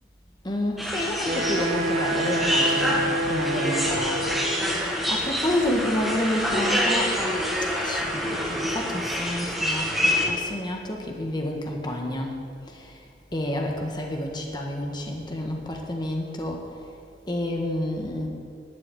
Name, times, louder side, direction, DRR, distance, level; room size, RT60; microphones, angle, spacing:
voice 1, 0.4-12.3 12.7-12.9 13.3-16.6 17.3-18.3, left 1 dB, 25° left, 1 dB, 1.6 m, -30 dB
sound 1, 0.8-10.3, equal, ahead, 2.2 m, -26 dB
Wind instrument woodwind instrument, 1.2-4.7, right 1 dB, 45° right, 1.4 m, -28 dB
12.0 x 7.8 x 9.2 m, 2.3 s
head